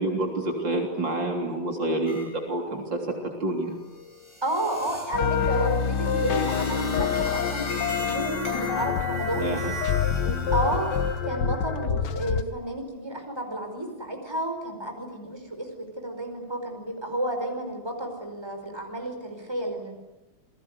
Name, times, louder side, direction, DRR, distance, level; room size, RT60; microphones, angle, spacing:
voice 1, 0.0-3.8 9.4-9.7 10.2-10.5, right 2 dB, 60° right, 2 dB, 4.1 m, -28 dB
sound 1, 2.1-2.3 2.7-11.3, left 1 dB, 30° left, 7.3 m, -37 dB
voice 2, 4.4-9.5 10.5-10.9 11.2-20.0, right 1 dB, 10° right, 4 dB, 5.1 m, -31 dB
sound 2, 5.1-12.4, left 7 dB, 60° left, 1.6 m, -26 dB
29.0 x 21.5 x 9.7 m, 1.0 s
omnidirectional pair, 2.3 m